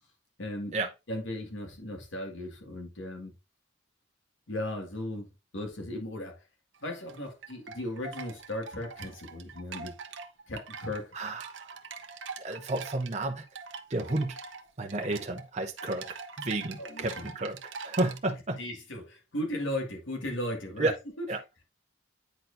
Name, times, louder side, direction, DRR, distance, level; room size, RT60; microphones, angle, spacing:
voice 1, 0.4-0.7 1.1-3.3 4.5-5.3 5.5-6.4 6.8-9.9 10.5-11.1 16.8-17.2 18.6-20.9 21.2-21.3, left 1 dB, 70° left, 1.8 m, -36 dB
sound 1, 6.7-18.2, right 5 dB, 65° right, 0.8 m, -44 dB
voice 2, 11.1-11.8 12.4-13.5 13.9-14.4 14.8-18.6 20.8-21.0 21.3-21.4, right 2 dB, 35° right, 0.8 m, -32 dB
9.2 x 4.4 x 2.6 m
head